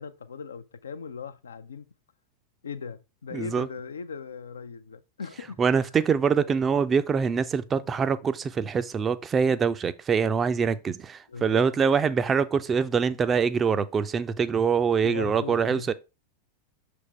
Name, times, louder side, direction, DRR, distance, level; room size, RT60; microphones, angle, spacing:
voice 1, 0.0-1.9 2.6-6.2 11.3-11.7 15.0-15.9, left 6 dB, 70° left, 0.5 m, -39 dB
voice 2, 3.3-3.7 5.6-15.9, right 6 dB, 20° right, 0.4 m, -24 dB
6.4 x 3.5 x 4.4 m
figure-of-eight pair, 90°, 0 cm